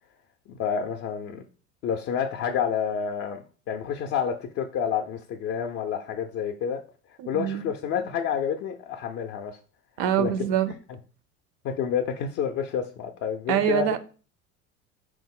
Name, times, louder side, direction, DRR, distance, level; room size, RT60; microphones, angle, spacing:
voice 1, 0.5-1.4 1.8-6.8 7.3-9.6 10.2-10.3 11.6-13.9, left 7 dB, 35° left, 0.4 m, -29 dB
voice 2, 7.2-7.7 10.0-10.7 13.5-14.0, right 10 dB, 50° right, 0.5 m, -25 dB
4.5 x 2.0 x 3.6 m
hypercardioid pair, 80°, 41 cm